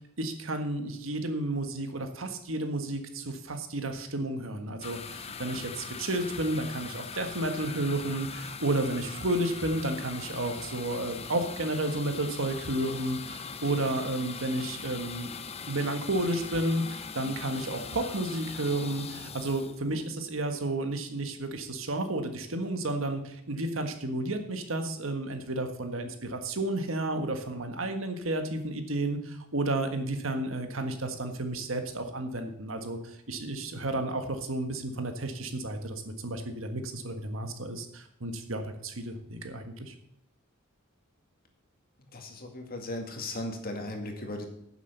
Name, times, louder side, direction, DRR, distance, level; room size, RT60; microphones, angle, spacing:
voice 1, 0.2-15.3 15.7-39.9, right 2 dB, 70° right, 6 dB, 1.6 m, -32 dB
sound 1, 4.8-20.5, left 6 dB, 30° left, 0.7 m, -41 dB
voice 2, 42.1-44.5, left 1 dB, 45° left, 3 dB, 2.1 m, -37 dB
10.5 x 7.4 x 6.7 m, 0.74 s
head